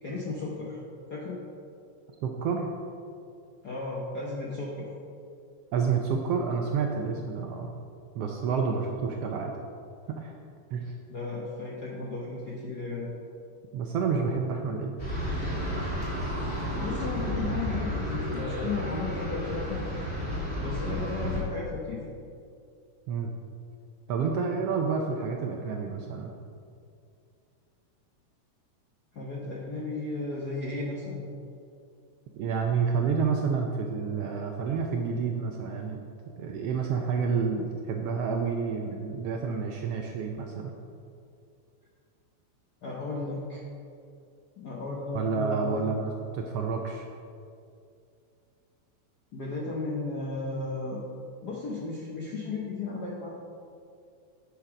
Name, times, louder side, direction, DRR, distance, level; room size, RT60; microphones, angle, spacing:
voice 1, 0.0-0.8 1.1-1.4 3.6-4.9 11.1-13.1 16.7-19.9 20.6-22.0 29.1-31.2 42.8-43.6 44.6-45.8 49.3-51.0 51.4-53.4, left 3 dB, 65° left, -4 dB, 1.0 m, -34 dB
voice 2, 2.2-2.7 5.7-7.7 8.1-9.6 10.1-10.3 10.7-10.9 13.7-15.0 20.9-21.0 23.1-23.3 24.1-26.3 32.3-36.0 36.4-40.7 45.1-47.1, right 5 dB, 75° right, 2 dB, 1.4 m, -29 dB
sound 1, 15.0-21.4, equal, 20° left, 2.7 m, -32 dB
10.0 x 6.6 x 5.1 m, 2.4 s
omnidirectional pair, 3.3 m